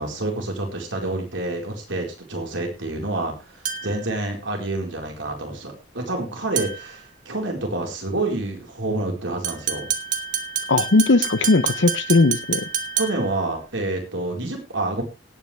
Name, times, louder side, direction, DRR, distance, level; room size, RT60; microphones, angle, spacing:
voice 1, 0.0-9.9 13.0-15.0, right 2 dB, 85° right, 2 dB, 4.5 m, -28 dB
sound 1, 3.7-4.1 6.6-7.0 9.4-13.4, right 7 dB, 45° right, 1.7 m, -28 dB
voice 2, 10.7-12.7, left 3 dB, 75° left, 14 dB, 0.8 m, -18 dB
18.0 x 9.5 x 3.4 m, 0.27 s
head